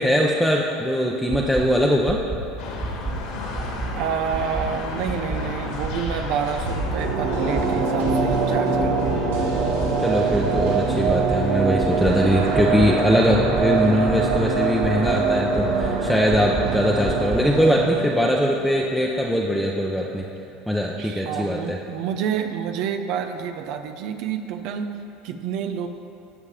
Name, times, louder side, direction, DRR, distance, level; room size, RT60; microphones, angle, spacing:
voice 1, 0.0-2.2 10.0-20.3 20.7-21.8, equal, ahead, -2 dB, 0.8 m, -21 dB
sound 1, 1.3-1.6 2.0-2.4 2.8-3.1 3.5-3.9 4.3-4.6 5.0-5.4 5.8-6.1 6.5-6.9 7.3-7.6 8.0-8.4 8.8-9.1 9.5-9.9 10.3-10.6 11.0-11.4 11.8-12.1 12.5-12.9 13.3-13.6 14.0-14.4 14.8-15.1 15.5-15.9 16.3-16.6 17.0-17.4, right 4 dB, 30° right, 2.1 m, -29 dB
sound 2, 2.6-18.0, left 4 dB, 70° left, 2.0 m, -35 dB
voice 2, 3.9-9.2 12.4-12.8 21.0-24.9 25.2-25.9, right 8 dB, 65° right, 7 dB, 0.7 m, -29 dB
sound 3, 6.7-19.7 20.1-20.2, right 4 dB, 90° right, 1.5 m, -24 dB
16.0 x 5.8 x 5.0 m, 2.7 s
supercardioid pair, 105°, 0 cm